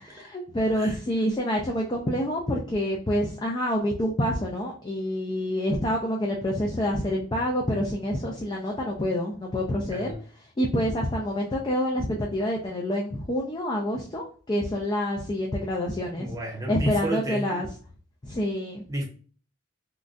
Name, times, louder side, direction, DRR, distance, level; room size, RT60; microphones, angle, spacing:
voice 1, 0.1-10.1 10.6-16.3 16.7-17.7 18.2-18.8, equal, 20° left, 0.4 m, -27 dB
voice 2, 16.2-17.6 18.9-19.0, right 1 dB, 15° right, 0.7 m, -32 dB
3.6 x 2.2 x 2.5 m
head